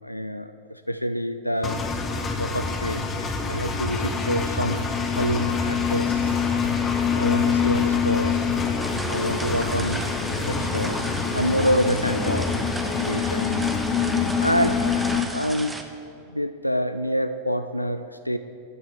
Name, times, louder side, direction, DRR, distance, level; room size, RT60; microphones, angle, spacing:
voice 1, 0.0-1.8 2.4-6.5 7.1-8.5 9.1-10.1 10.5-12.6 13.0-13.7 14.4-14.9 15.3-15.8 16.3-18.4, equal, 90° left, 9 dB, 0.3 m, -27 dB
sound 1, 1.5-1.9 2.1-4.5 4.7-4.8 5.1-7.5 7.7-7.9 8.1-10.9, equal, 65° right, 2.4 m, -46 dB
Engine, 1.6-15.2, left 5 dB, 20° left, 0.9 m, -25 dB
sound 2, 8.8-15.8, right 2 dB, 10° right, 0.8 m, -36 dB
13.5 x 9.2 x 3.4 m, 2.6 s
figure-of-eight pair, 90°, 0 cm